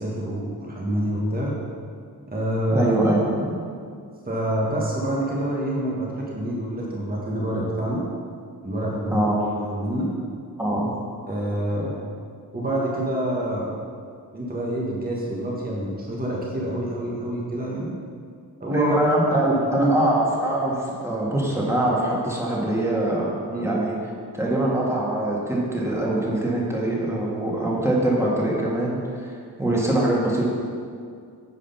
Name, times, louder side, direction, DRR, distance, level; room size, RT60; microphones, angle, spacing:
voice 1, 0.0-1.5 2.3-2.9 4.3-8.0 8.6-9.3 9.6-10.1 11.3-11.9 12.5-13.7 14.3-17.9 18.6-19.0 19.4-19.9 23.5-23.7, right 1 dB, 25° right, -4 dB, 1.6 m, -27 dB
voice 2, 2.7-3.6 9.1-9.3 10.6-10.9 18.7-23.3 23.6-24.0 24.3-30.4, right 1 dB, 5° right, -5 dB, 2.0 m, -23 dB
9.6 x 5.1 x 5.7 m, 2.2 s
wide cardioid pair, 85°, 39 cm